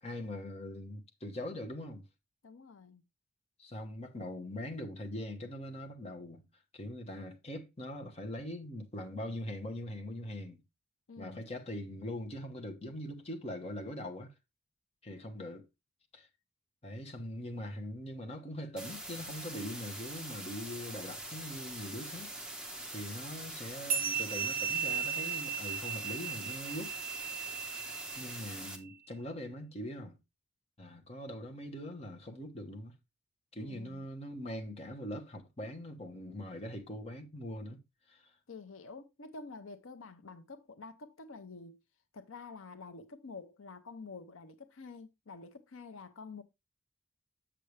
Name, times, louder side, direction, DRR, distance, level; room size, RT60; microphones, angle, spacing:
voice 1, 0.0-2.0 3.6-6.4 6.7-10.6 11.2-14.3 15.0-15.7 16.1-16.3 16.8-22.3 22.9-27.0 28.1-30.2 30.8-32.9 33.5-37.8 38.1-38.3, left 1 dB, 30° left, 1.1 m, -42 dB
voice 2, 2.4-3.0 11.1-11.5 33.6-34.1 38.5-41.8 42.1-46.4, left 4 dB, 75° left, 0.7 m, -48 dB
sound 1, 18.8-28.8, right 1 dB, 5° right, 1.2 m, -44 dB
sound 2, 23.9-28.8, right 7 dB, 45° right, 2.2 m, -36 dB
7.5 x 6.7 x 3.2 m
head